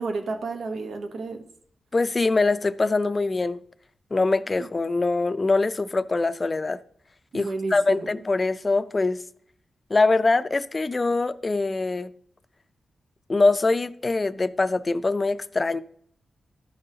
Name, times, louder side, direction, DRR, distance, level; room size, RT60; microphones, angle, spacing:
voice 1, 0.0-1.4 4.5-4.7 7.3-8.1, right 3 dB, 80° right, 0.9 m, -31 dB
voice 2, 1.9-3.6 4.1-6.8 7.3-9.2 9.9-12.1 13.3-15.8, left 3 dB, 30° left, 0.4 m, -23 dB
13.5 x 5.4 x 2.8 m
wide cardioid pair, 105°, 0 cm